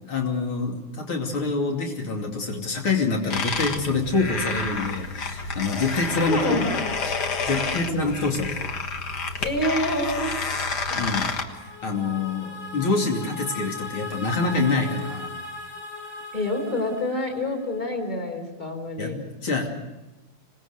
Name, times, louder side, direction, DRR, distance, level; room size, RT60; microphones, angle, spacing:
voice 1, 0.1-6.6 7.0-7.1 7.5-8.7 10.9-15.3 19.0-19.7, left 3 dB, 85° left, 1 dB, 3.6 m, -26 dB
sound 1, 3.3-11.4, left 4 dB, 55° left, 2.1 m, -29 dB
voice 2, 6.2-6.7 9.4-10.3 16.3-19.2, left 1 dB, 20° left, 3 dB, 4.0 m, -27 dB
sound 2, 10.8-17.9, left 4 dB, 40° left, 6.7 m, -38 dB
26.0 x 19.5 x 6.7 m, 1.1 s
omnidirectional pair, 2.3 m